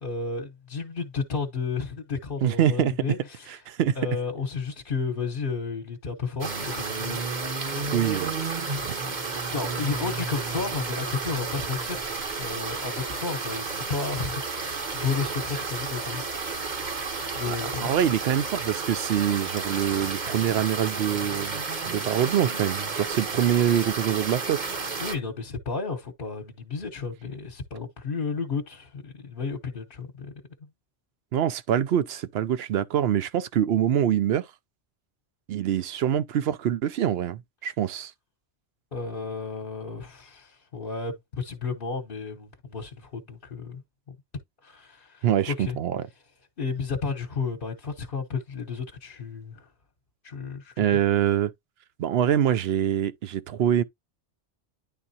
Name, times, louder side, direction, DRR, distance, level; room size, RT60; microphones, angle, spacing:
voice 1, 0.0-3.6 3.9-7.2 7.7-7.9 8.6-9.1 9.5-12.1 12.4-16.8 17.3-18.0 25.0-30.7 38.9-43.8 44.1-44.2 44.6-45.8 46.6-49.7 50.2-51.0, left 5 dB, 50° left, 1.1 m, -33 dB
voice 2, 2.4-2.9 3.7-4.0 7.9-8.3 17.5-24.7 31.3-34.4 35.5-38.1 45.2-46.1 50.8-51.5 52.0-53.8, right 10 dB, 65° right, 0.8 m, -25 dB
sound 1, 6.4-25.2, right 4 dB, 45° right, 1.0 m, -32 dB
10.0 x 3.6 x 2.7 m
omnidirectional pair, 1.2 m